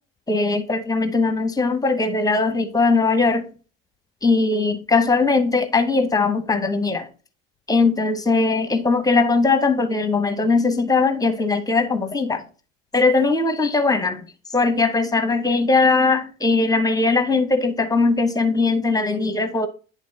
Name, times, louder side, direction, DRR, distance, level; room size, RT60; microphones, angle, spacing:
voice 1, 0.3-3.5 4.2-7.1 7.7-12.4 12.9-14.3 14.5-19.7, left 3 dB, 10° left, 0.7 m, -20 dB
10.5 x 3.6 x 2.7 m
figure-of-eight pair, 80°, 38 cm